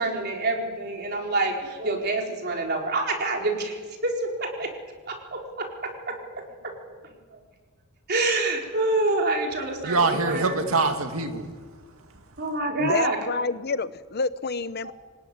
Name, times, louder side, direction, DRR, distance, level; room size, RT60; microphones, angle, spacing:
voice 1, 0.0-4.7 5.1-5.7 6.1-6.7 7.3-7.4 8.1-10.9 12.4-13.3 14.8-14.9, right 2 dB, 50° right, 4.2 m, -27 dB
voice 2, 9.8-12.2, right 3 dB, 75° right, 2.4 m, -25 dB
voice 3, 12.8-14.9, left 4 dB, 50° left, 0.9 m, -28 dB
25.5 x 19.0 x 9.5 m
head